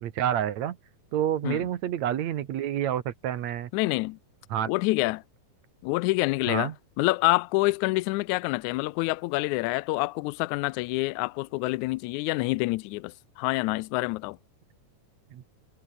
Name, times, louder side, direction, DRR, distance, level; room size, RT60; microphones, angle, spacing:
voice 1, 0.0-0.8 1.1-3.7 4.5-4.7 6.5-6.7 15.3-15.4, right 10 dB, 65° right, 2.5 m, -28 dB
voice 2, 3.7-4.2 4.7-5.2 5.8-6.7 7.0-14.4, left 22 dB, 80° left, 1.8 m, -27 dB
omnidirectional pair, 3.7 m